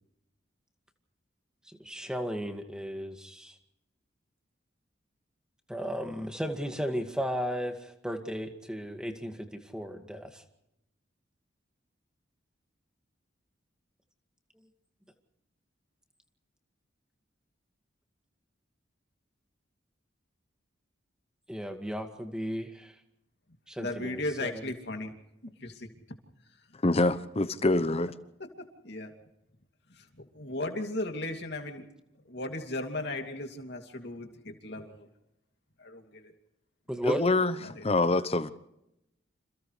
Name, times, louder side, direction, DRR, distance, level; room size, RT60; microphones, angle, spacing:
voice 1, 1.7-3.5 5.7-10.4 21.5-22.9 23.7-24.6 36.9-37.2, equal, 5° right, 2.0 m, -35 dB
voice 2, 23.8-25.1 25.4-25.9 28.8-29.1 29.9-31.8 32.3-35.1 35.8-36.3 37.6-37.8, left 2 dB, 60° left, 2.8 m, -36 dB
voice 3, 26.8-28.1 37.0-37.5 37.8-38.5, left 2 dB, 30° left, 0.9 m, -25 dB
29.0 x 28.0 x 3.3 m
head